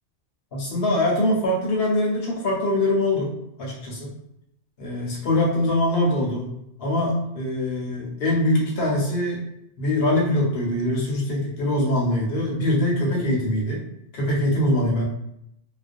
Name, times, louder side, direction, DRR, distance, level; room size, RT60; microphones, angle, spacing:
voice 1, 0.5-3.3 3.6-4.1 4.8-6.5 6.8-9.4 9.8-13.8 14.1-15.0, left 1 dB, 60° left, -2 dB, 0.9 m, -23 dB
2.4 x 2.1 x 2.5 m, 0.78 s
omnidirectional pair, 1.3 m